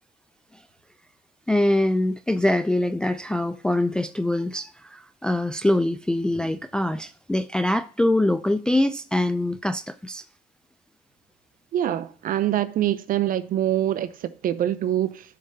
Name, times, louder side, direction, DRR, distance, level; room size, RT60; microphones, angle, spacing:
voice 1, 1.5-10.2, left 1 dB, 5° left, 0.3 m, -24 dB
voice 2, 11.7-15.2, right 12 dB, 55° right, 0.6 m, -24 dB
11.0 x 6.6 x 2.7 m
cardioid pair, 110°, 17 cm